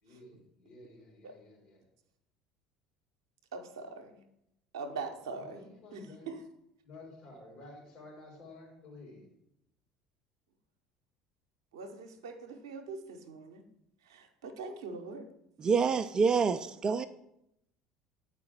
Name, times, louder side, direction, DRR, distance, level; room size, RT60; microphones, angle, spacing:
voice 1, 0.0-1.8 5.4-6.3 6.8-9.3, left 2 dB, 55° left, 3.2 m, -52 dB
voice 2, 3.5-4.2 4.7-6.4 11.7-13.6 14.1-15.3, right 4 dB, 70° right, 0.7 m, -42 dB
voice 3, 15.6-17.1, right 5 dB, 30° right, 0.3 m, -27 dB
8.4 x 4.7 x 4.3 m
figure-of-eight pair, 65°, 2 cm